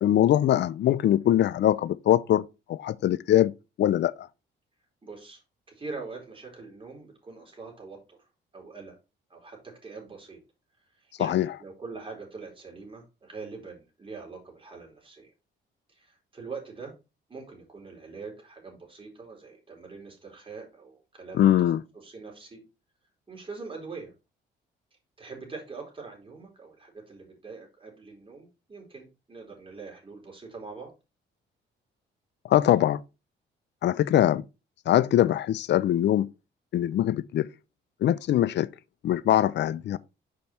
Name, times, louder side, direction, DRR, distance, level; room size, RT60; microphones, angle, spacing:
voice 1, 0.0-2.4 2.7-3.5 3.8-4.3 11.2-11.5 21.4-21.8 32.5-33.0 33.8-34.4 34.9-36.3 36.7-37.5 38.0-38.7 39.0-40.0, left 12 dB, 60° left, 0.5 m, -22 dB
voice 2, 5.0-5.4 5.7-8.3 8.5-9.0 9.3-10.4 10.9-15.3 15.9-16.9 17.3-21.7 22.0-22.6 23.3-24.1 25.2-30.9, right 4 dB, 25° right, 4.4 m, -43 dB
6.2 x 5.3 x 4.3 m
cardioid pair, 90°, 20 cm